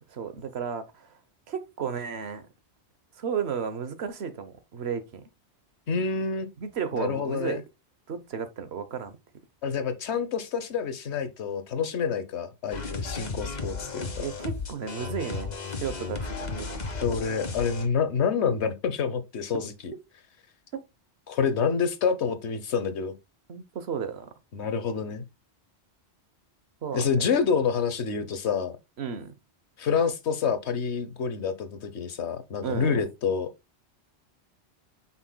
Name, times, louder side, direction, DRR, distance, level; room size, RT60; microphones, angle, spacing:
voice 1, 0.1-1.1 1.5-2.5 3.2-5.2 6.6-7.6 8.1-9.2 14.2-16.8 23.5-24.3 26.8-27.1 29.0-29.3 32.6-33.0, right 7 dB, 65° right, 1.2 m, -33 dB
voice 2, 5.9-6.5 6.9-7.6 9.6-14.2 17.0-19.7 21.3-23.1 24.5-25.2 26.9-28.8 29.8-33.5, left 6 dB, 75° left, 1.2 m, -27 dB
sound 1, 12.7-17.9, left 4 dB, 40° left, 1.1 m, -34 dB
8.0 x 5.7 x 2.2 m
omnidirectional pair, 1.2 m